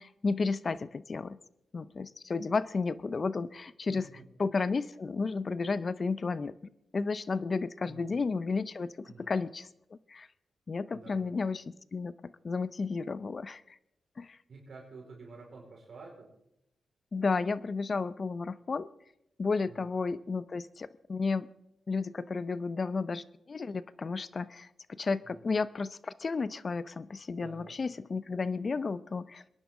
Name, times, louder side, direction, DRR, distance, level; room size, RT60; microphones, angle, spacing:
voice 1, 0.0-1.4 1.7-4.1 4.4-6.6 6.9-9.7 10.1-10.3 10.7-13.6 14.2-14.4 17.1-18.9 19.4-21.5 21.9-29.4, left 4 dB, 45° left, 17 dB, 0.6 m, -32 dB
voice 2, 3.9-4.3 7.8-8.1 9.0-9.3 10.9-11.4 14.5-16.3 19.7-19.8 25.2-25.4 27.4-27.8, right 3 dB, 60° right, -2 dB, 4.8 m, -50 dB
22.5 x 11.0 x 3.8 m, 0.81 s
cardioid pair, 65°, 0 cm